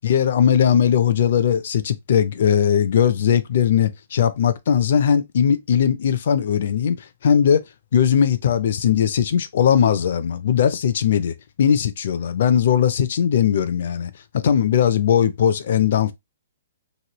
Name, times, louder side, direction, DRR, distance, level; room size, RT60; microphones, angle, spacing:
voice 1, 0.0-7.6 7.9-16.1, left 8 dB, 55° left, 0.5 m, -19 dB
3.0 x 2.7 x 2.9 m
hypercardioid pair, 170°, 0 cm